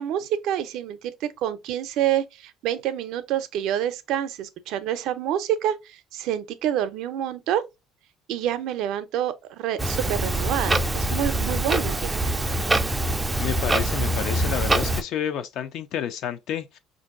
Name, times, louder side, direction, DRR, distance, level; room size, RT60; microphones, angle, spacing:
voice 1, 0.0-7.6 8.3-12.2, right 11 dB, 70° right, 0.5 m, -27 dB
Clock, 9.8-15.0, right 1 dB, 10° right, 0.3 m, -24 dB
voice 2, 13.4-16.8, left 9 dB, 60° left, 0.4 m, -30 dB
4.4 x 2.5 x 2.4 m
cardioid pair, 130°, 0 cm